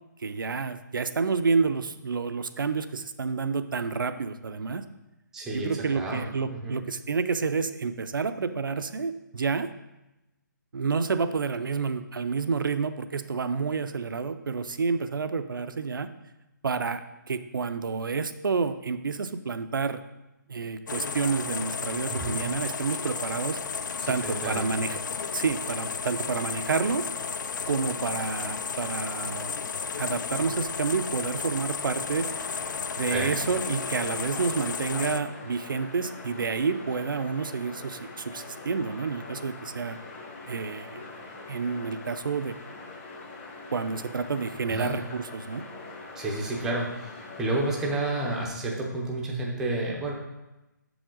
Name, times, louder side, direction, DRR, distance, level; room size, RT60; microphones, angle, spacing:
voice 1, 0.2-4.8 5.5-9.7 10.7-16.1 16.6-20.0 20.5-23.6 24.1-25.0 25.3-27.0 27.7-29.6 30.0-32.3 33.0-40.0 40.5-41.0 41.5-42.5 43.7-45.6, right 5 dB, 85° right, 11 dB, 0.5 m, -29 dB
voice 2, 5.3-6.8 22.1-22.4 24.0-24.8 33.1-33.3 44.7-44.9 46.2-50.1, right 2 dB, 5° right, -3 dB, 0.5 m, -31 dB
sound 1, 20.9-35.2, left 5 dB, 65° left, 0.4 m, -33 dB
sound 2, 32.1-48.5, left 3 dB, 35° left, 1.2 m, -43 dB
7.0 x 5.0 x 3.8 m, 1.0 s
hypercardioid pair, 165°, 11 cm